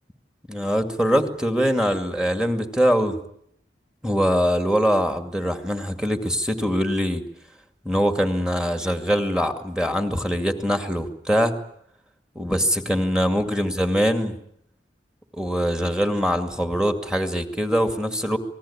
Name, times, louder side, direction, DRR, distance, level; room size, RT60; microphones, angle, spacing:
voice 1, 0.5-3.1 4.0-7.2 7.8-11.5 12.4-14.3 15.3-18.4, equal, 5° right, 7 dB, 2.2 m, -23 dB
27.0 x 19.5 x 8.6 m, 0.71 s
head